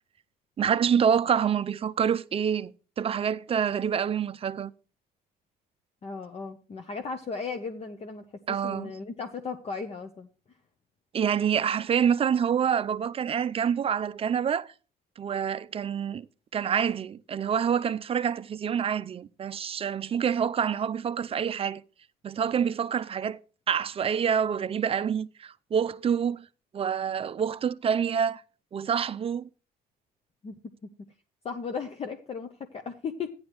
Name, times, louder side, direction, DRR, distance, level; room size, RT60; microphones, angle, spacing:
voice 1, 0.6-2.7 3.0-4.7 8.5-8.9 11.1-14.7 15.2-16.3 16.5-21.8 22.2-23.4 23.7-26.4 26.7-28.4 28.7-29.5, right 7 dB, 35° right, 0.5 m, -27 dB
voice 2, 6.0-10.3 30.4-30.9 31.4-33.3, left 5 dB, 35° left, 1.0 m, -36 dB
14.0 x 10.5 x 3.1 m
cardioid pair, 110°, 17 cm